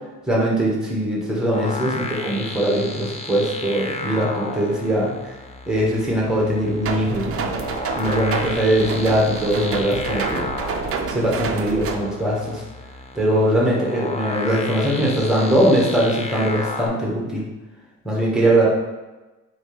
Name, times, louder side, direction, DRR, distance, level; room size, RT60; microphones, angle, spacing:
voice 1, 0.3-5.1 5.7-7.6 7.9-10.5 11.1-12.6 13.1-17.4 18.0-18.7, right 1 dB, ahead, -4 dB, 1.3 m, -21 dB
sound 1, 1.5-16.9, left 2 dB, 20° left, 0.5 m, -33 dB
sound 2, 6.8-12.0, right 5 dB, 45° right, 0.5 m, -28 dB
3.4 x 2.9 x 4.7 m, 1.1 s
cardioid pair, 115°, 33 cm